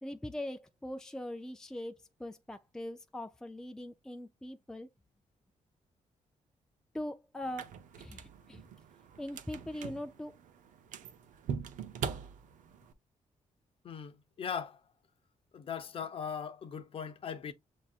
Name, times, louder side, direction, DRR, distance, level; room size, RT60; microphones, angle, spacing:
voice 1, 0.0-4.9 6.9-8.7 9.2-10.4, left 1 dB, 5° left, 0.5 m, -41 dB
sound 1, 7.4-12.9, right 7 dB, 85° right, 0.6 m, -42 dB
voice 2, 13.8-14.8 15.5-17.5, left 7 dB, 45° left, 0.7 m, -39 dB
7.2 x 2.7 x 2.4 m
cardioid pair, 140°, 13 cm